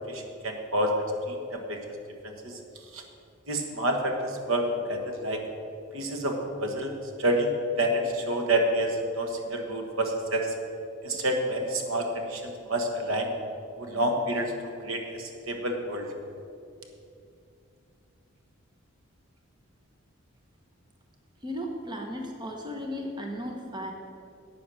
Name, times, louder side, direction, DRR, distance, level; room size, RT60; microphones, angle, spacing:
voice 1, 0.1-0.9 1.3-1.8 2.4-2.5 2.9-3.0 3.5-5.4 5.9-6.9 7.2-10.5 11.0-12.4 12.7-13.3 13.8-14.5 14.8-16.0, right 1 dB, 75° right, 3 dB, 1.4 m, -28 dB
voice 2, 21.4-23.9, equal, 20° right, 2 dB, 0.9 m, -35 dB
10.0 x 8.5 x 6.2 m, 2.6 s
head